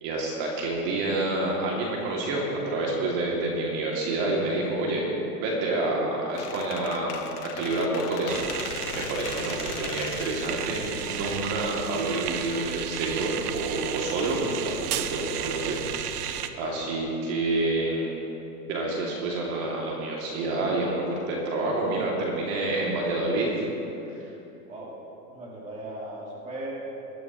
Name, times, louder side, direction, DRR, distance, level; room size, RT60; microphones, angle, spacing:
voice 1, 0.0-5.1 5.4-18.1 18.7-23.5, right 2 dB, 45° right, -3 dB, 2.5 m, -28 dB
Squeak, 6.4-12.2, left 8 dB, 80° left, 1.4 m, -39 dB
sound 1, 8.3-16.5, right 9 dB, 80° right, 0.9 m, -33 dB
voice 2, 25.3-26.7, right 1 dB, 15° right, -5 dB, 2.8 m, -38 dB
20.5 x 12.5 x 3.1 m, 3.0 s
supercardioid pair, 135°, 45 cm